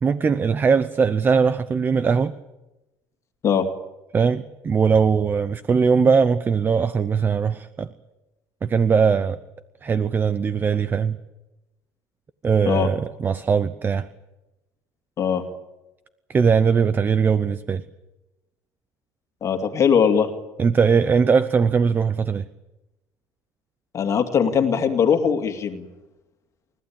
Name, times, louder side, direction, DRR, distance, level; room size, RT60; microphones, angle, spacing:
voice 1, 0.0-2.4 4.1-7.9 8.6-9.4 9.8-11.2 12.4-14.1 16.3-17.8 20.6-22.5, right 6 dB, 20° right, 0.7 m, -20 dB
voice 2, 19.4-20.3 23.9-25.9, left 7 dB, 35° left, 2.5 m, -20 dB
29.5 x 15.0 x 8.8 m
cardioid pair, 145°, 9 cm